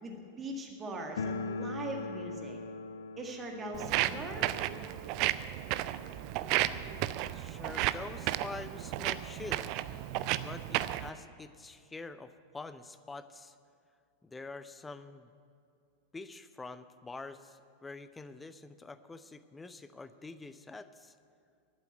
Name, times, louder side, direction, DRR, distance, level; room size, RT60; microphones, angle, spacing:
voice 1, 0.0-2.6 3.2-4.5, right 1 dB, 20° right, 2 dB, 1.9 m, -41 dB
sound 1, 1.2-7.9 8.1-8.2 8.5-8.6 9.3-9.4 9.7-10.9, left 3 dB, 65° left, 0.5 m, -42 dB
Walk footsteps, 3.7-11.1, right 14 dB, 40° right, 0.4 m, -33 dB
voice 2, 6.5-7.0 7.3-9.8 10.4-13.5 14.2-15.3 16.1-21.1, left 3 dB, 10° left, 13 dB, 0.6 m, -46 dB
11.5 x 8.4 x 9.4 m, 2.4 s
figure-of-eight pair, 90°, 0 cm